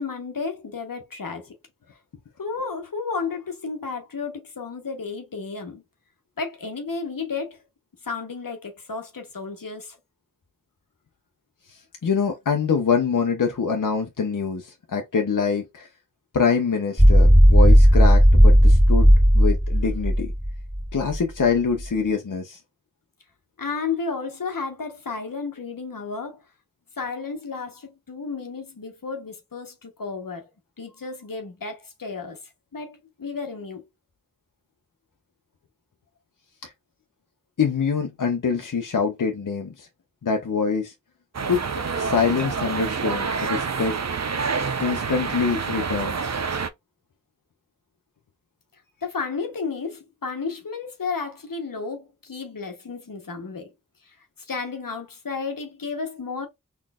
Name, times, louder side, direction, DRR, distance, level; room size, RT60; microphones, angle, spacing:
voice 1, 0.0-1.5 2.4-5.8 6.4-7.6 8.0-10.0 23.6-26.4 27.0-30.4 30.8-32.4 32.7-33.8 49.0-53.7 54.1-56.5, left 4 dB, 85° left, 1.0 m, -32 dB
voice 2, 11.7-15.9 16.3-19.1 19.3-20.3 20.9-22.6 36.6-36.7 37.6-39.9 40.2-40.9 41.5-41.6 41.9-44.0 44.8-46.2, left 5 dB, 70° left, 0.7 m, -24 dB
sound 1, 17.0-21.2, equal, 15° right, 1.8 m, -14 dB
sound 2, 41.3-46.7, right 5 dB, 55° right, 0.6 m, -27 dB
4.0 x 3.3 x 2.3 m
wide cardioid pair, 45°, 33 cm